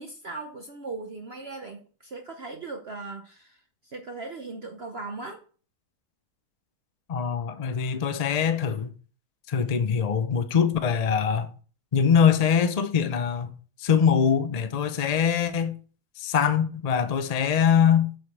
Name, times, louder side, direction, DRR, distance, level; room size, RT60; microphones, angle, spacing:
voice 1, 0.0-5.4, right 3 dB, 50° right, 0.9 m, -38 dB
voice 2, 7.1-8.9 9.5-11.5 11.9-15.8 16.2-18.1, left 7 dB, 55° left, 0.4 m, -23 dB
7.7 x 5.1 x 6.0 m
omnidirectional pair, 1.8 m